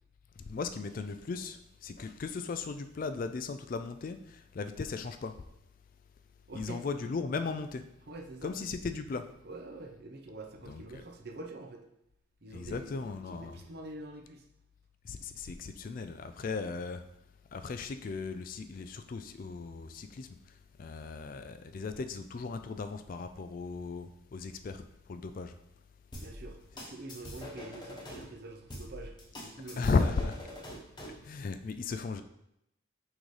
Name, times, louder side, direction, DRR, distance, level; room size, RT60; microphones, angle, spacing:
voice 1, 0.4-5.3 6.5-7.8 8.4-9.3 10.7-11.0 12.5-13.6 15.0-17.0 17.5-20.3 20.8-24.8 25.1-25.5 29.8-30.4 31.2-32.2, left 4 dB, 40° left, 9 dB, 0.3 m, -36 dB
voice 2, 6.5-6.8 8.1-8.5 9.4-11.8 12.4-14.4 15.6-15.7 26.1-30.1 31.2-31.3, right 2 dB, 50° right, 4 dB, 0.7 m, -46 dB
sound 1, 26.1-28.2 28.7-31.2, left 1 dB, 20° left, 1.0 m, -44 dB
6.2 x 5.2 x 3.2 m, 0.82 s
head